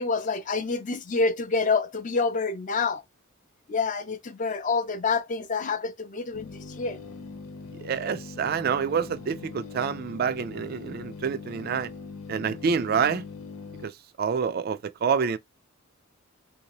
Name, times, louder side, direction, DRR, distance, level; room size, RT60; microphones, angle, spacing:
voice 1, 0.0-3.0 3.7-7.0, left 4 dB, 35° left, 0.5 m, -27 dB
sound 1, 6.3-13.9, left 4 dB, 75° left, 0.6 m, -41 dB
voice 2, 7.8-11.9 12.3-13.2 13.8-13.9 14.2-15.4, right 6 dB, 45° right, 0.3 m, -27 dB
3.6 x 2.7 x 2.9 m
head